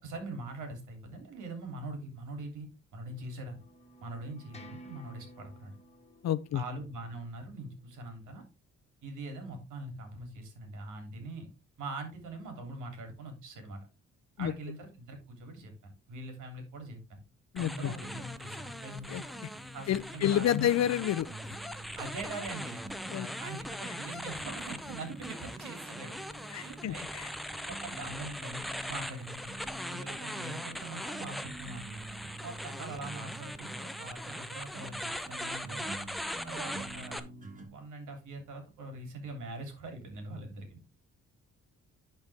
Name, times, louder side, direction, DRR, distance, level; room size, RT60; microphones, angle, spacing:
voice 1, 0.0-2.7 2.9-3.6 4.0-5.8 6.5-8.4 9.0-11.5 11.8-13.8 14.4-17.2 17.6-19.2 19.7-20.7 22.0-22.8 23.3-26.2 26.5-27.2 27.7-28.6 28.9-29.6 29.9-32.0 32.4-35.9 36.4-37.3 37.6-40.8, right 2 dB, 75° right, 3.1 m, -43 dB
sound 1, 3.1-8.2, right 1 dB, 20° left, 1.7 m, -55 dB
voice 2, 6.2-6.6 14.4-14.5 17.5-17.9 19.1-19.2 19.9-21.3 23.1-23.3 26.5-27.3, left 11 dB, 60° left, 0.7 m, -29 dB
sound 2, 17.6-37.2, equal, ahead, 0.7 m, -41 dB
sound 3, 18.0-37.7, right 1 dB, 25° right, 2.6 m, -48 dB
10.5 x 4.5 x 3.5 m
cardioid pair, 90°, 30 cm